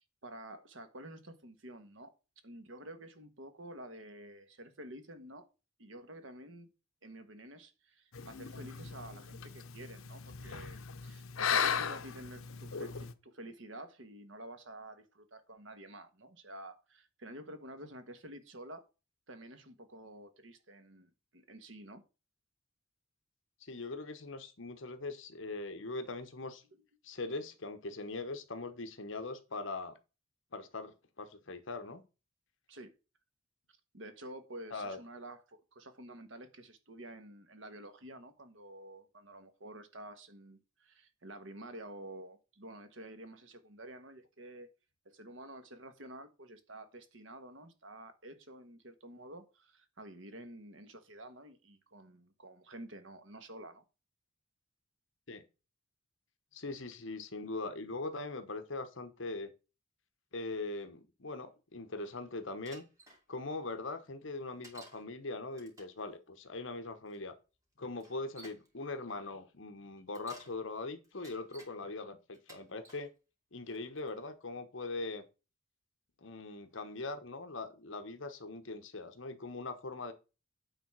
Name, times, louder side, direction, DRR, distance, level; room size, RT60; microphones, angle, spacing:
voice 1, 0.0-2.1 2.4-5.5 5.8-6.7 7.0-18.8 19.3-22.0 26.7-26.8 32.7-32.9 33.9-44.7 45.0-53.8, right 1 dB, 65° right, 1.4 m, -50 dB
sound 1, 8.1-13.1, left 7 dB, 85° left, 0.8 m, -37 dB
voice 2, 23.6-26.6 27.0-29.9 30.5-32.0 34.7-35.0 55.3-55.4 56.5-59.5 60.3-62.9 63.3-67.3 67.8-73.1 73.5-75.3 76.2-80.1, left 3 dB, 65° left, 1.1 m, -41 dB
Bicycle, 62.7-63.2 64.6-65.0 65.5-66.0 67.1-67.2 68.0-68.7 70.0-70.6 71.0-71.7 72.3-73.1 73.7-74.1, right 1 dB, 15° right, 2.5 m, -55 dB
9.1 x 4.0 x 6.1 m
head